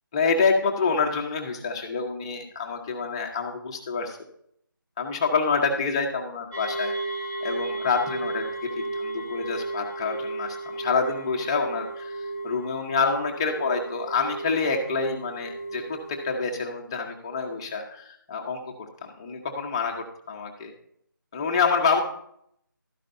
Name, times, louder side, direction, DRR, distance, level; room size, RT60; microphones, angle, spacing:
voice 1, 0.1-4.2 5.0-6.9 7.4-8.5 8.8-12.1 12.4-20.7 21.3-22.0, left 5 dB, 15° left, 1 dB, 0.9 m, -27 dB
sound 1, 6.5-16.4, right 2 dB, 15° right, 1.2 m, -34 dB
12.5 x 9.8 x 2.6 m, 0.69 s
figure-of-eight pair, 170°, 12 cm